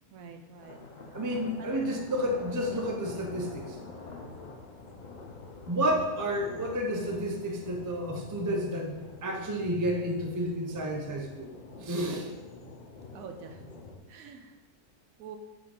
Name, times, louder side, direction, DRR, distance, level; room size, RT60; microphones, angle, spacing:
voice 1, 0.1-0.8 1.6-1.7 13.1-13.7 14.1-14.6 15.2-15.4, right 6 dB, 70° right, 6 dB, 1.0 m, -46 dB
sound 1, 0.5-14.0, left 3 dB, 45° left, 0.6 m, -46 dB
voice 2, 1.1-3.8 5.7-11.5 11.8-12.3, equal, 30° right, 2 dB, 0.3 m, -31 dB
7.5 x 5.0 x 3.8 m, 1.2 s
omnidirectional pair, 1.6 m